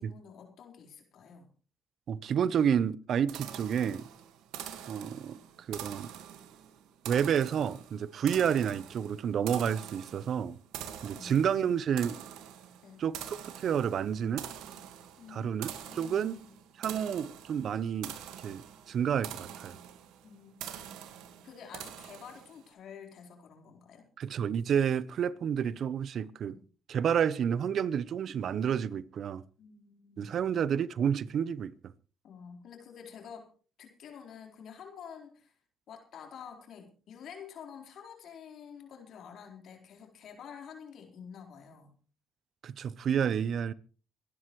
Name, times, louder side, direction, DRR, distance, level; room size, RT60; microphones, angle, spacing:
voice 1, 0.0-1.5 11.1-11.7 12.8-13.0 15.2-15.5 15.9-16.6 20.2-20.9 21.4-24.0 26.5-26.6 29.6-30.3 32.2-33.5 33.8-35.5 35.9-41.9, left 7 dB, 65° left, 4.4 m, -49 dB
voice 2, 2.1-4.1 4.9-5.4 5.7-6.1 7.1-10.6 11.0-12.2 13.0-14.5 15.3-16.4 16.8-18.1 18.4-19.7 24.2-26.6 26.9-29.4 30.2-31.7 42.6-43.7, right 8 dB, 60° right, 0.8 m, -30 dB
sound 1, 3.3-22.7, right 10 dB, 80° right, 1.7 m, -45 dB
25.5 x 11.5 x 3.2 m
hypercardioid pair, 55°, 0 cm